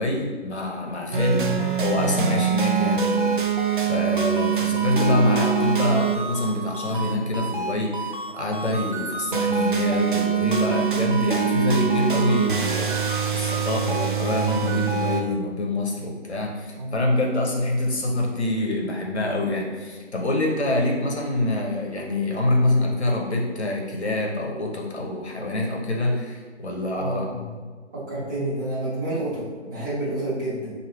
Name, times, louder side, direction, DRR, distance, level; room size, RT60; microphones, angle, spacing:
voice 1, 0.0-3.3 3.9-13.0 13.3-27.3, left 2 dB, 70° left, -1 dB, 1.0 m, -25 dB
sound 1, 1.1-15.2, right 6 dB, 45° right, 0.4 m, -24 dB
voice 2, 26.9-27.5 28.1-30.7, right 1 dB, 15° right, -11 dB, 1.3 m, -29 dB
4.9 x 2.7 x 3.1 m, 1.5 s
figure-of-eight pair, 145°, 35 cm